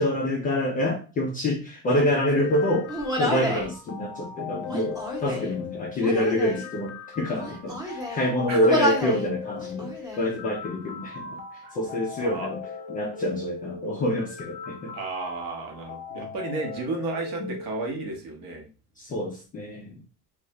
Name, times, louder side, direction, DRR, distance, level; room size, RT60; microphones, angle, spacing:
voice 1, 0.0-2.8 3.2-12.6 12.9-14.9 17.4-17.5 19.0-19.9, left 1 dB, 20° left, -3 dB, 0.3 m, -26 dB
sound 1, 2.1-18.1, left 6 dB, 35° left, 0.9 m, -39 dB
Human voice, 2.9-3.7 4.6-5.5 6.0-6.6 7.3-8.3 8.6-9.2 9.6-10.3, left 1 dB, 10° right, 0.8 m, -29 dB
voice 2, 12.2-12.5 14.9-18.7, right 3 dB, 50° right, 1 dB, 1.0 m, -33 dB
2.6 x 2.4 x 3.0 m, 0.34 s
supercardioid pair, 125°, 46 cm